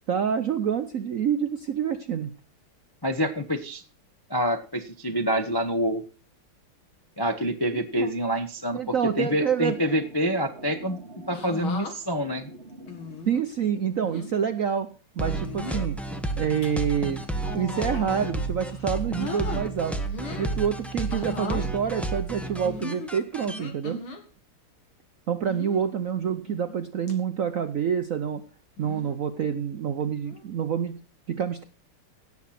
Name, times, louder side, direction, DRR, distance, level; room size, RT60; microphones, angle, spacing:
voice 1, 0.1-2.3 7.7-8.1 8.7-9.7 13.3-14.9 15.2-16.0 16.4-17.2 17.5-19.9 20.3-24.0 25.3-28.4 28.8-31.0 31.3-31.6, right 8 dB, 65° right, 9 dB, 0.8 m, -27 dB
voice 2, 3.0-3.8 4.3-6.0 7.2-11.0 11.3-12.5, equal, 40° left, 6 dB, 0.3 m, -27 dB
sound 1, 9.5-14.1, right 2 dB, 30° right, 1.7 m, -47 dB
sound 2, 11.3-11.9 12.9-13.4 14.0-14.3 15.3-15.9 16.4-16.7 17.4-18.3 18.7-19.6 20.0-20.5 21.1-21.7 22.6-24.2 25.4-25.9 26.5-26.8 27.1-27.2 28.8-29.2 30.2-30.5, left 3 dB, 70° left, 2.9 m, -37 dB
sound 3, 15.2-23.6, right 2 dB, ahead, 0.7 m, -31 dB
17.0 x 7.2 x 5.8 m, 0.40 s
omnidirectional pair, 2.3 m